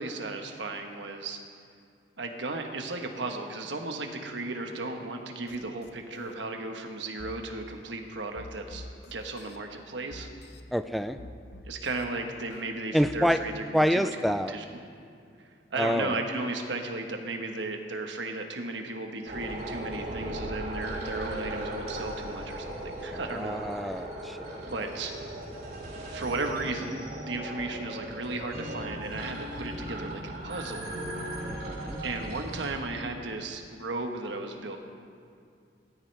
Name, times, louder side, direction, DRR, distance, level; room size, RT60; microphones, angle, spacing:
voice 1, 0.0-1.4 2.2-10.3 11.6-14.1 14.5-14.6 15.7-24.0 24.6-25.1 26.1-30.9 32.0-34.8, right 2 dB, 80° right, 4 dB, 1.2 m, -35 dB
sound 1, 5.5-5.6 5.8-6.4 7.2-7.4 8.4-9.6 10.1-10.6 11.2-12.0 12.5-13.2, left 1 dB, 60° left, 0.9 m, -46 dB
voice 2, 10.7-11.2 12.9-13.4 13.7-14.5 15.8-16.2 23.1-24.6 31.4-32.0, equal, ahead, 10 dB, 0.3 m, -27 dB
sound 2, 19.3-32.7, right 1 dB, 55° right, 3.4 m, -37 dB
18.5 x 13.0 x 3.4 m, 2.3 s
head